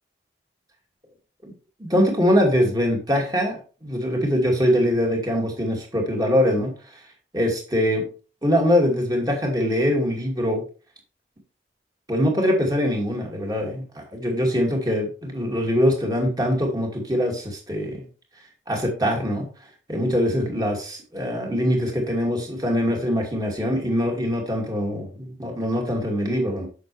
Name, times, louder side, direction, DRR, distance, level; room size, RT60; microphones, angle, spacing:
voice 1, 1.8-6.7 7.3-8.0 8.4-10.6 12.1-18.0 18.7-19.5 19.9-26.7, equal, 20° right, 0 dB, 2.5 m, -23 dB
8.3 x 6.7 x 3.3 m, 0.36 s
head